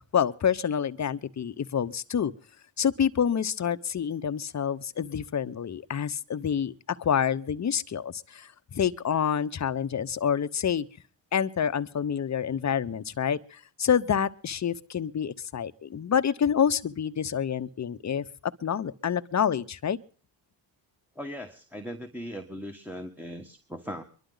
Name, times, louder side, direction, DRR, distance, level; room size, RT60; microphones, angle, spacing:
voice 1, 0.0-2.3 2.8-6.7 7.0-10.9 11.3-18.2 18.6-20.0, left 8 dB, 35° left, 1.0 m, -27 dB
voice 2, 21.1-24.0, equal, 5° right, 1.5 m, -39 dB
23.5 x 12.0 x 3.9 m
supercardioid pair, 70°, 48 cm